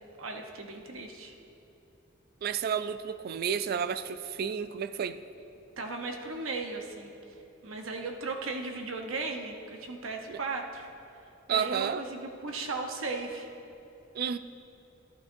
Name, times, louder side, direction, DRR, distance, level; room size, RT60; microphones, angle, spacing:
voice 1, 0.2-1.3 5.8-7.1 7.6-10.9 11.5-13.5, right 3 dB, 80° right, 3 dB, 0.9 m, -36 dB
voice 2, 2.4-5.2 10.3-10.4 11.5-12.0 14.1-14.4, right 7 dB, 50° right, 13 dB, 0.3 m, -31 dB
12.0 x 11.5 x 2.6 m, 2.9 s
head